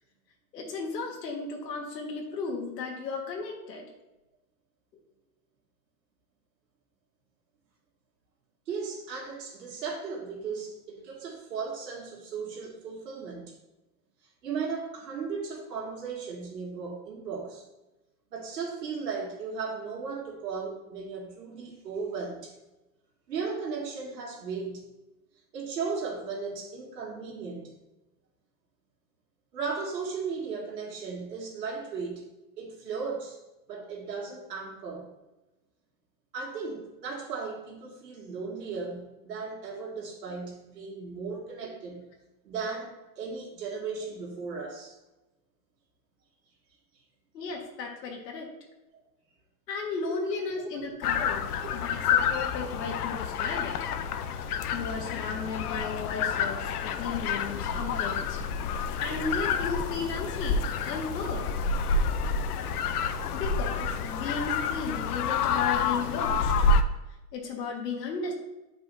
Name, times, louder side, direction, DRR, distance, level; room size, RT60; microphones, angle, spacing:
voice 1, 0.5-3.9 47.3-48.5 49.7-51.5 51.8-53.8 54.3-58.4 59.0-61.5 63.3-66.5 67.3-68.3, left 4 dB, 85° left, 0 dB, 1.7 m, -35 dB
voice 2, 8.7-13.5 14.4-17.6 18.3-22.5 23.3-24.9 25.5-27.7 29.5-32.2 32.6-33.4 33.7-35.1 36.3-42.1 42.4-44.9 50.0-50.1 50.6-50.7, right 5 dB, 85° right, -1 dB, 2.4 m, -36 dB
sound 1, 51.0-66.8, left 5 dB, 70° left, 0.7 m, -28 dB
9.2 x 5.4 x 2.7 m, 1.0 s
supercardioid pair, 160°, 48 cm